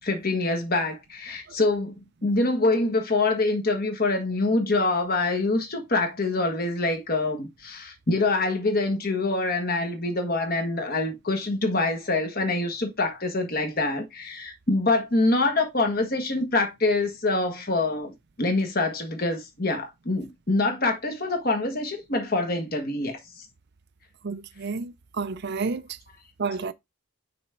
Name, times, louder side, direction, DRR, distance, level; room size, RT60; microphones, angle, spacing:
voice 1, 0.0-1.9 2.2-18.1 18.4-23.4, left 2 dB, 45° left, 1.5 m, -25 dB
voice 2, 24.2-25.8 26.4-26.7, right 4 dB, 50° right, 0.5 m, -30 dB
6.0 x 3.6 x 4.3 m
head